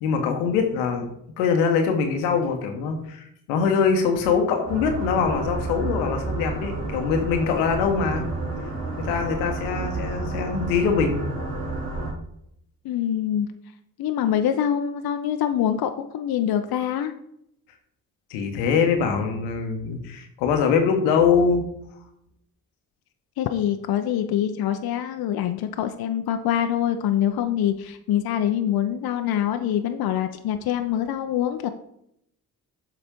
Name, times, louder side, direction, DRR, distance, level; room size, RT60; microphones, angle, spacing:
voice 1, 0.0-1.1 1.4-8.3 9.0-11.2 18.3-21.6, left 6 dB, 85° left, 5 dB, 1.1 m, -23 dB
sound 1, 4.7-12.1, right 2 dB, 55° right, 2.6 m, -30 dB
voice 2, 12.8-13.5 14.0-17.1 23.4-31.7, left 10 dB, 60° left, 8 dB, 0.7 m, -25 dB
7.5 x 4.1 x 5.2 m, 0.74 s
hypercardioid pair, 40°, 42 cm